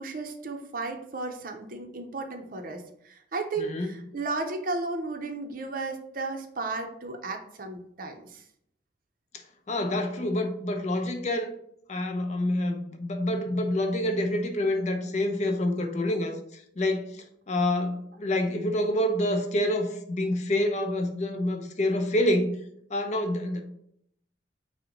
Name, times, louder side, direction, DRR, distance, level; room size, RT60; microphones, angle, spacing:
voice 1, 0.0-8.4, right 3 dB, 50° right, 0.5 m, -34 dB
voice 2, 3.6-3.9 9.7-11.5 11.9-22.5 22.9-23.6, left 1 dB, 40° left, 0.5 m, -27 dB
5.7 x 2.1 x 3.8 m
head